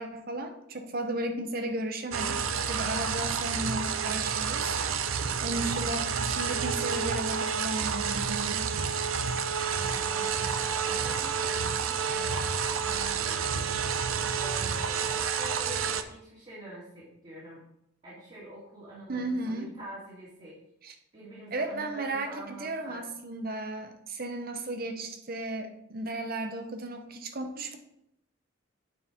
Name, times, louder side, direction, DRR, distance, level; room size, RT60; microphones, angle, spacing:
voice 1, 0.0-4.8 5.4-8.7 12.1-12.2 19.1-19.7 20.8-20.9 21.5-27.8, right 1 dB, 45° right, 6 dB, 0.9 m, -35 dB
sound 1, 2.1-16.0, right 6 dB, 90° right, 0.6 m, -29 dB
voice 2, 9.6-13.7 14.3-17.6 18.0-20.6 21.1-23.0, right 1 dB, 30° right, -9 dB, 2.3 m, -46 dB
8.9 x 4.7 x 4.5 m, 0.79 s
head